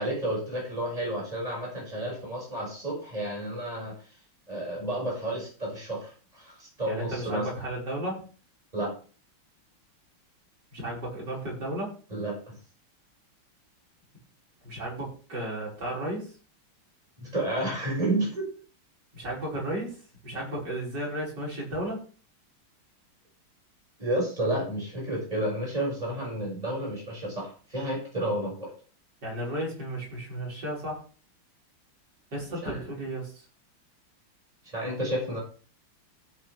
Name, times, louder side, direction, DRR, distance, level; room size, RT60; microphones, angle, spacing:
voice 1, 0.0-3.9 4.5-7.5 8.7-8.9 12.1-12.3 17.2-18.5 24.0-28.7 32.6-32.8 34.6-35.4, right 1 dB, 15° right, -3 dB, 6.3 m, -31 dB
voice 2, 6.9-8.2 10.7-11.9 14.6-16.3 19.1-19.9 20.2-22.0 29.2-31.0 32.3-33.4, right 1 dB, 50° right, -4 dB, 6.0 m, -34 dB
15.0 x 8.6 x 3.5 m, 0.38 s
omnidirectional pair, 2.3 m